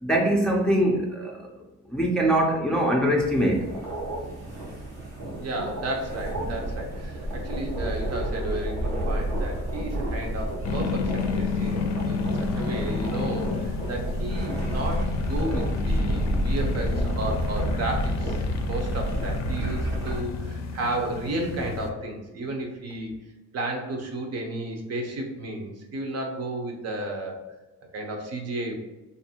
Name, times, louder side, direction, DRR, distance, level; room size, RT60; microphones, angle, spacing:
voice 1, 0.0-1.5 1.9-3.7, right 1 dB, 5° left, -1 dB, 0.4 m, -23 dB
sound 1, 3.2-20.2, right 1 dB, 90° right, 1.0 m, -30 dB
voice 2, 5.4-18.4 18.7-23.2 23.5-27.4 27.9-28.7, right 1 dB, 55° right, 2 dB, 0.7 m, -33 dB
sound 2, 10.6-21.9, left 5 dB, 65° left, 0.4 m, -31 dB
2.5 x 2.5 x 2.8 m, 1.1 s
cardioid pair, 90°, 30 cm